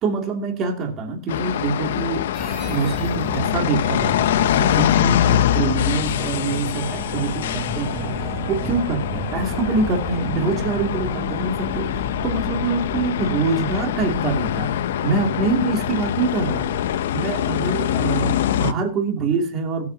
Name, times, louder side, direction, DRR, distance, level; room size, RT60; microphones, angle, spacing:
voice 1, 0.0-2.3 2.7-14.7 15.0-16.7 17.1-19.9, right 4 dB, 30° right, 2 dB, 2.7 m, -25 dB
sound 1, 1.3-18.7, left 11 dB, 85° left, 0.7 m, -24 dB
sound 2, 2.3-17.0, right 1 dB, 5° right, 3.3 m, -33 dB
22.5 x 8.6 x 2.8 m, 0.33 s
supercardioid pair, 165°, 0 cm